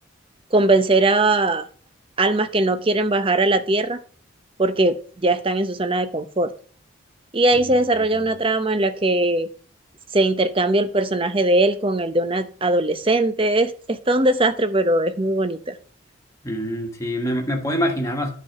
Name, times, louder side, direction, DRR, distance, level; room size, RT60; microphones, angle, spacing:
voice 1, 0.5-1.7 2.2-4.0 4.6-6.5 7.3-9.5 10.1-15.8, right 2 dB, 25° right, 0.7 m, -20 dB
voice 2, 16.4-18.3, equal, 15° left, 1.6 m, -25 dB
10.5 x 4.8 x 8.1 m
head